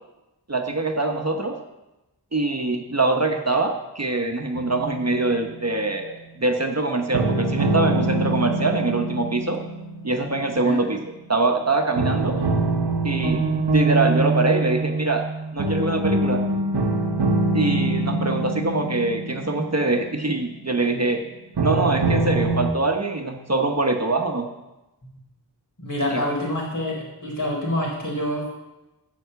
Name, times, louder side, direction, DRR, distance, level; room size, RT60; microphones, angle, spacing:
voice 1, 0.5-1.6 2.3-9.6 10.0-11.0 11.3-12.4 13.0-15.3 15.5-16.4 17.5-21.2 21.6-24.5 26.1-26.2, right 2 dB, 40° right, 4 dB, 1.1 m, -23 dB
sound 1, 4.5-5.7 7.1-11.1 12.0-20.8 21.6-22.7, right 2 dB, 70° right, 1.0 m, -24 dB
voice 2, 25.8-28.5, left 1 dB, 50° left, -3 dB, 4.7 m, -27 dB
9.3 x 7.1 x 8.1 m, 1.0 s
wide cardioid pair, 60°, 41 cm